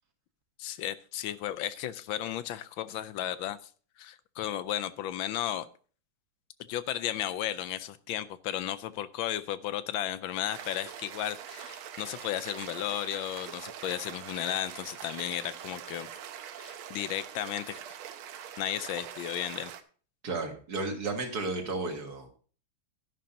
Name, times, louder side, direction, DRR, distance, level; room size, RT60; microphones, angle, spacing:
voice 1, 0.6-3.6 4.0-5.7 6.7-16.1 16.5-17.8 18.6-19.7, left 12 dB, 75° left, 14 dB, 1.3 m, -34 dB
sound 1, 10.5-19.8, right 9 dB, 75° right, 1.6 m, -43 dB
voice 2, 20.2-22.3, right 3 dB, 45° right, 3 dB, 2.3 m, -33 dB
12.0 x 11.0 x 2.8 m, 0.41 s
omnidirectional pair, 2.4 m